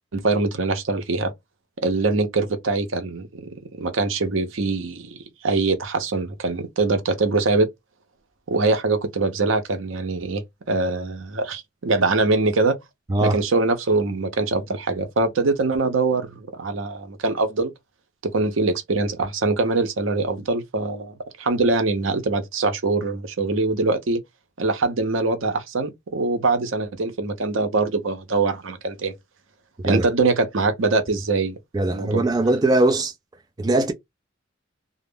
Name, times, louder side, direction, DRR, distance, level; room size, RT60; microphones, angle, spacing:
voice 1, 0.1-1.3 1.8-7.7 8.5-12.8 13.2-17.7 18.2-24.2 24.6-29.1 29.8-31.6 31.9-32.2, right 3 dB, 75° right, 0.6 m, -23 dB
voice 2, 31.7-33.1 33.6-33.9, right 2 dB, 20° right, 0.3 m, -20 dB
2.4 x 2.0 x 3.4 m
head